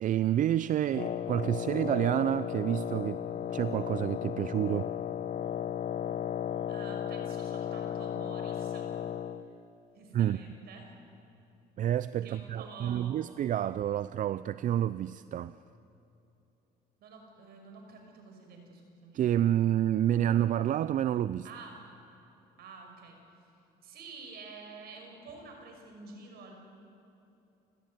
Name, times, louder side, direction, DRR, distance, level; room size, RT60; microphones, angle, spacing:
voice 1, 0.0-3.3 3.5-4.9 10.1-10.4 11.8-15.6 19.1-21.5, right 11 dB, 50° right, 16 dB, 0.5 m, -29 dB
Wind instrument woodwind instrument, 0.9-9.5, left 10 dB, 45° left, 0.9 m, -35 dB
voice 2, 6.7-8.9 9.9-10.9 12.2-13.3 17.0-19.2 21.4-21.8 22.6-23.2 23.8-26.6, right 4 dB, 70° right, 3 dB, 5.9 m, -49 dB
29.0 x 15.0 x 9.4 m, 2.9 s
cardioid pair, 110°, 17 cm